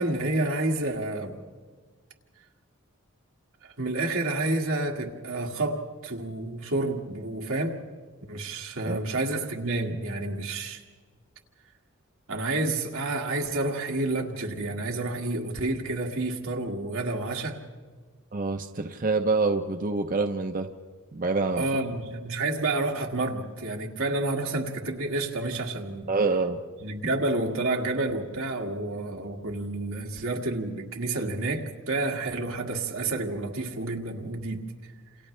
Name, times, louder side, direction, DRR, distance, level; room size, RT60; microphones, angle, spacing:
voice 1, 0.0-1.4 3.6-7.9 8.3-10.8 12.3-17.6 21.6-26.1 26.8-34.7, right 2 dB, 85° right, 1 dB, 2.0 m, -29 dB
voice 2, 18.3-20.7 21.1-21.6 26.1-26.6, right 3 dB, 40° right, 5 dB, 0.7 m, -26 dB
29.0 x 27.5 x 3.3 m, 1.5 s
head